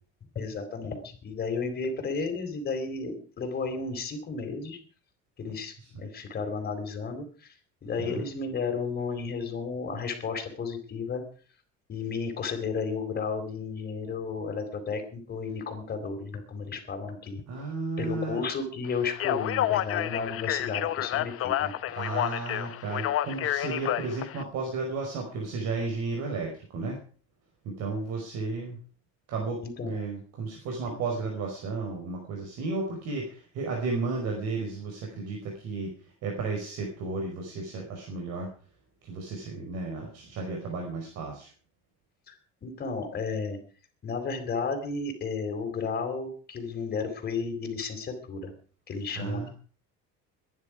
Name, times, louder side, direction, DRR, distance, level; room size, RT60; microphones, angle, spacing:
voice 1, 0.3-4.8 5.4-7.5 7.8-11.2 11.9-17.4 18.0-21.7 22.3-22.5 29.6-29.9 30.9-31.0 42.3-43.6 44.0-48.5 48.9-49.5, left 4 dB, 35° left, 6 dB, 4.2 m, -33 dB
voice 2, 17.5-18.5 21.9-27.0 27.6-28.8 29.3-38.5 39.0-41.5 49.2-49.5, right 3 dB, 60° right, 1 dB, 5.0 m, -33 dB
Speech, 19.1-24.4, left 12 dB, 50° left, 1.0 m, -29 dB
22.5 x 11.0 x 5.0 m, 0.42 s
cardioid pair, 145°, 29 cm